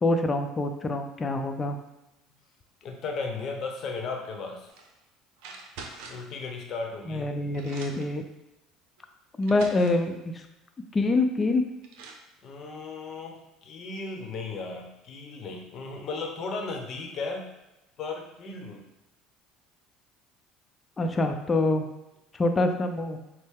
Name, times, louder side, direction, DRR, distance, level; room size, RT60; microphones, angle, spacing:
voice 1, 0.0-1.8 7.1-8.2 9.4-10.4 10.9-11.6 21.0-21.9 22.3-23.2, left 2 dB, 25° left, 6 dB, 0.6 m, -25 dB
voice 2, 2.8-4.7 6.1-7.3 12.4-17.5 18.0-18.9, left 4 dB, 50° left, 2 dB, 0.9 m, -36 dB
sound 1, 4.7-4.9 5.4-6.3 7.2-7.3 7.5-8.2 9.0-9.1 9.4-10.1 11.4-11.5 11.8-12.3, right 4 dB, 70° right, 0.6 m, -44 dB
6.2 x 2.1 x 3.7 m, 0.95 s
hypercardioid pair, 75°, 0 cm